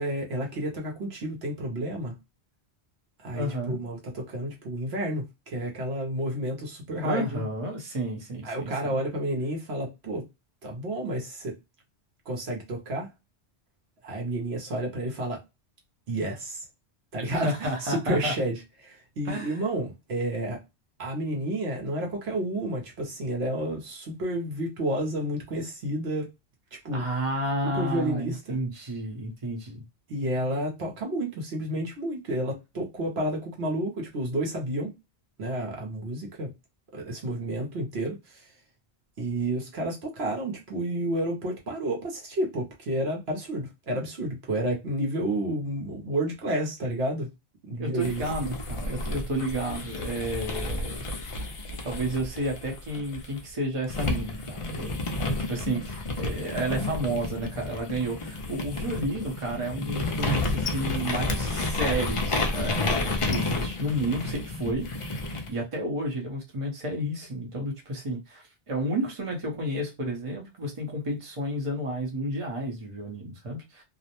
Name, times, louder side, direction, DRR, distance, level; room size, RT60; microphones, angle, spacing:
voice 1, 0.0-2.1 3.2-7.5 8.4-10.2 10.6-11.5 12.3-13.1 14.0-15.4 16.1-16.6 17.1-20.6 21.0-26.3 26.8-27.0 27.7-28.6 30.1-34.9 35.4-36.5 36.9-38.5 39.2-47.3 47.6-48.2, right 1 dB, 70° right, 1.0 m, -30 dB
voice 2, 3.3-3.8 7.0-8.9 17.3-18.3 19.2-19.6 26.9-29.8 47.8-51.0 51.8-54.9 55.2-73.8, right 1 dB, 35° right, 0.8 m, -31 dB
sound 1, 48.0-53.4 53.9-65.5, left 2 dB, 45° left, 0.4 m, -31 dB
2.5 x 2.0 x 2.8 m
omnidirectional pair, 1.1 m